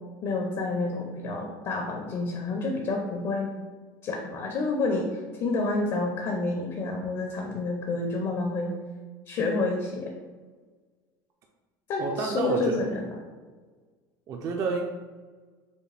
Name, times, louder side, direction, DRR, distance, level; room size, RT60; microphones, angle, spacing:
voice 1, 0.2-3.5 4.0-8.8 9.3-10.1 11.9-13.2, left 3 dB, 40° left, 1 dB, 0.5 m, -29 dB
voice 2, 12.0-13.0 14.3-14.8, right 4 dB, 30° right, 1 dB, 0.3 m, -29 dB
5.0 x 2.2 x 3.2 m, 1.4 s
cardioid pair, 155°, 10 cm